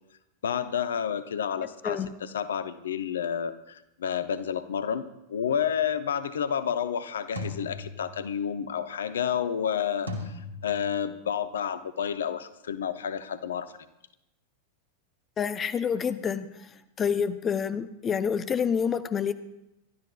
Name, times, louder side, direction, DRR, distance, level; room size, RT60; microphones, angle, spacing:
voice 1, 0.4-13.7, left 8 dB, 65° left, 12 dB, 0.7 m, -30 dB
sound 1, 5.5-5.8 7.4-8.5 10.1-11.3, left 2 dB, 90° left, 2.6 m, -39 dB
voice 2, 15.4-16.5 17.0-19.3, left 7 dB, 25° left, 12 dB, 0.7 m, -27 dB
27.5 x 12.5 x 2.4 m, 0.87 s
figure-of-eight pair, 90°, 0 cm